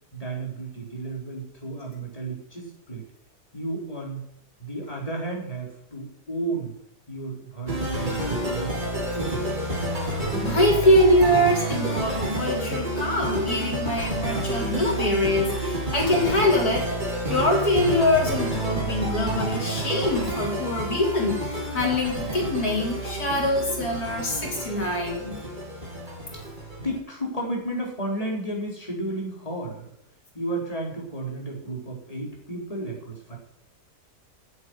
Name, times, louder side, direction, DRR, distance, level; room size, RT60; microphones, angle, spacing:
voice 1, 0.1-3.1 3.5-4.2 4.6-6.7 7.1-9.6 26.8-29.9 30.3-33.4, right 2 dB, 20° left, -2 dB, 4.5 m, -33 dB
sound 1, 7.7-27.0, right 1 dB, 30° right, 4.4 m, -29 dB
voice 2, 10.0-16.9 17.3-25.3, left 1 dB, 70° left, -3 dB, 4.8 m, -24 dB
10.0 x 9.1 x 9.7 m, 0.74 s
omnidirectional pair, 1.7 m